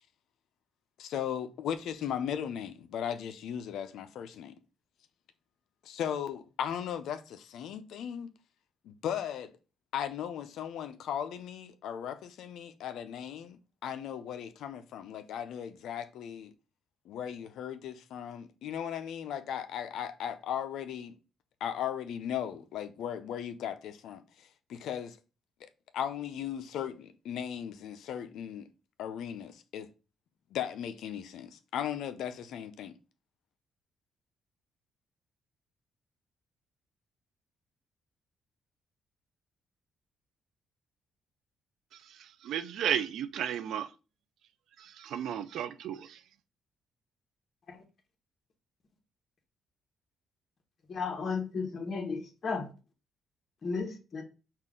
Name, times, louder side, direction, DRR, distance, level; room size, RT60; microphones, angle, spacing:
voice 1, 1.0-4.5 5.8-8.3 8.8-9.5 9.9-16.5 17.1-21.1 21.6-25.2 25.6-25.7 25.9-28.6 29.0-29.9 30.5-32.9, left 9 dB, 80° left, 0.5 m, -37 dB
voice 2, 42.4-43.9 44.8-46.2, right 9 dB, 75° right, 0.4 m, -33 dB
voice 3, 50.9-52.7 53.6-54.2, left 4 dB, 50° left, 1.3 m, -34 dB
5.6 x 2.4 x 3.6 m
cardioid pair, 90°, 0 cm